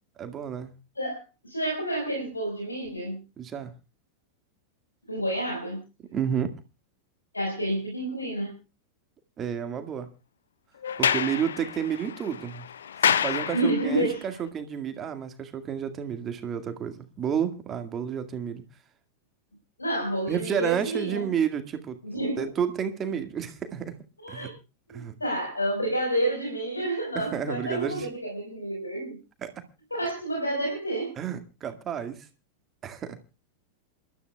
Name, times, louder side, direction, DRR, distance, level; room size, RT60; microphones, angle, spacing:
voice 1, 0.2-0.7 3.4-3.7 6.1-6.5 9.4-10.1 11.0-12.7 13.0-18.6 20.3-22.0 22.4-23.9 24.3-24.5 24.9-25.2 27.2-28.1 29.4-29.6 31.2-32.3 32.8-33.2, right 8 dB, 25° right, 2.0 m, -31 dB
voice 2, 1.0-3.2 5.1-5.8 7.3-8.6 13.5-14.2 19.8-21.2 22.0-22.5 24.2-24.5 24.9-29.2 29.9-31.1, right 1 dB, 80° left, 4.9 m, -29 dB
Sliding door, 10.8-14.1, left 8 dB, 65° left, 0.7 m, -28 dB
28.0 x 13.0 x 2.3 m
figure-of-eight pair, 90°, 0 cm